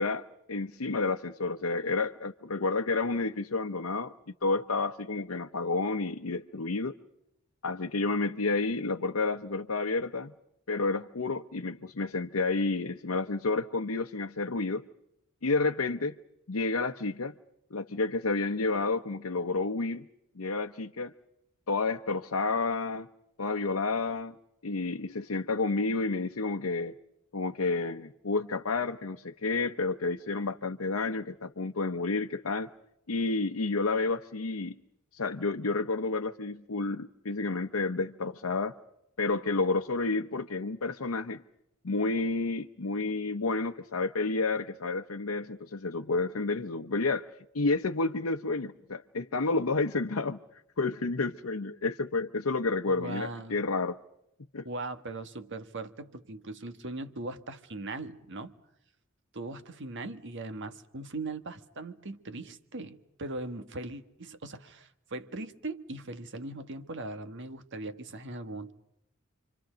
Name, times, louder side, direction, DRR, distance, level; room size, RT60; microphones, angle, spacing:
voice 1, 0.0-4.1 4.4-7.0 7.6-10.3 10.7-14.8 15.4-16.2 16.5-17.3 17.7-20.1 20.4-21.1 21.7-23.1 23.4-24.4 24.6-26.9 27.3-32.7 33.1-34.7 35.1-38.7 39.2-41.4 41.8-47.3 47.5-54.0 54.5-54.7, left 3 dB, 85° left, 0.8 m, -30 dB
voice 2, 52.9-53.6 54.6-58.5 59.3-68.7, right 2 dB, 60° right, 1.6 m, -39 dB
28.5 x 25.5 x 5.1 m
head